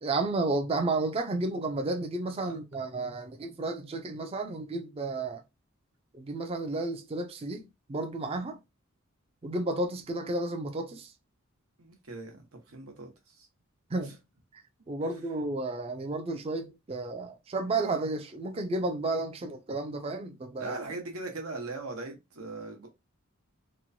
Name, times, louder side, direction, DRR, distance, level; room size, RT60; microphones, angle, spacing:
voice 1, 0.0-5.4 6.1-8.6 9.4-11.1 13.9-14.2 14.9-20.8, right 2 dB, 25° right, 0.4 m, -32 dB
voice 2, 11.8-13.5 15.0-15.4 20.6-22.9, right 3 dB, 85° right, 1.0 m, -40 dB
3.0 x 2.2 x 2.6 m
head